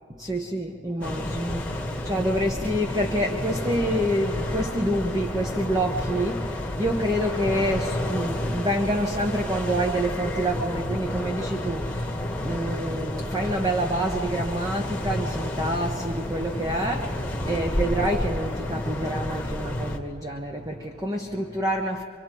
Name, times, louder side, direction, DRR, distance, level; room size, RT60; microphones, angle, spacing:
voice 1, 0.1-22.0, right 1 dB, 20° right, 1 dB, 1.0 m, -27 dB
sound 1, 1.0-20.0, left 1 dB, 5° left, 1.5 m, -30 dB
26.5 x 25.0 x 4.6 m, 2.3 s
head